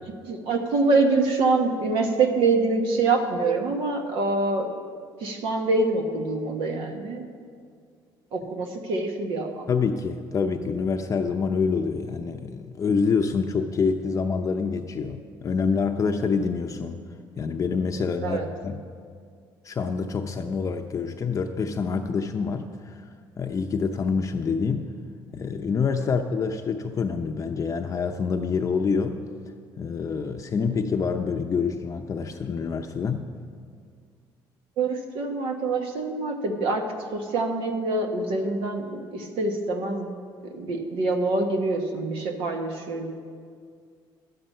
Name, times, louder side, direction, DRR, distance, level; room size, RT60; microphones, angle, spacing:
voice 1, 0.2-4.7 5.2-7.2 8.3-9.7 18.2-18.5 34.8-36.8 37.1-40.1 40.4-43.1, right 3 dB, 75° right, 4 dB, 1.3 m, -25 dB
voice 2, 9.7-17.0 17.4-18.8 19.6-23.0 23.4-24.9 25.3-29.2 29.8-33.3, left 5 dB, 35° left, 4 dB, 0.6 m, -26 dB
12.0 x 8.8 x 5.5 m, 2.1 s
cardioid pair, 95°, 9 cm